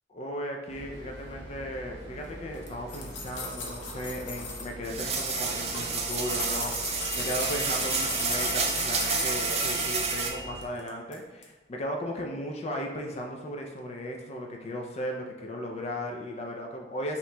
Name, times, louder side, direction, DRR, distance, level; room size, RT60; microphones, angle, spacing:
voice 1, 0.1-17.2, equal, 35° left, 1 dB, 0.4 m, -36 dB
sound 1, 0.7-10.7, right 1 dB, 80° right, 0.7 m, -42 dB
sound 2, 2.5-4.7 5.0-10.2 10.6-11.2 11.4-11.5, left 3 dB, 85° left, 0.8 m, -37 dB
sound 3, 4.8-10.3, right 4 dB, 35° right, 0.5 m, -30 dB
5.6 x 2.9 x 2.2 m, 1.2 s
head